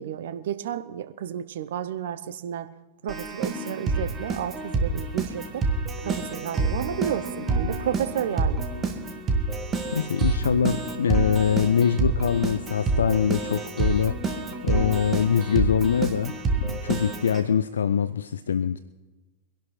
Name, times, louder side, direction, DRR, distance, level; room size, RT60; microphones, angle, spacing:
voice 1, 0.0-2.7 3.0-5.6 6.0-8.7, right 10 dB, 60° right, 12 dB, 0.7 m, -32 dB
Keyboard (musical), 3.1-17.4, right 3 dB, 25° right, 1.7 m, -28 dB
voice 2, 9.9-14.2 14.6-18.8, left 7 dB, 70° left, 14 dB, 0.4 m, -24 dB
24.0 x 11.5 x 3.1 m, 1.2 s
figure-of-eight pair, 90°, 0 cm